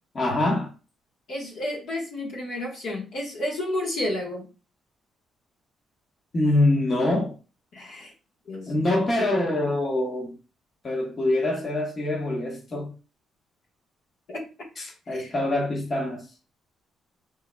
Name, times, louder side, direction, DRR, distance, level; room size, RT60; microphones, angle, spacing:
voice 1, 0.1-0.7 6.3-7.3 8.7-10.3 10.8-12.9 14.8-16.2, left 1 dB, 35° left, 1.0 m, -24 dB
voice 2, 1.3-4.5 7.7-8.1 8.5-9.0 14.3-14.4 15.1-15.3, left 1 dB, 70° left, 1.2 m, -31 dB
3.9 x 3.6 x 2.2 m
cardioid pair, 95°, 0 cm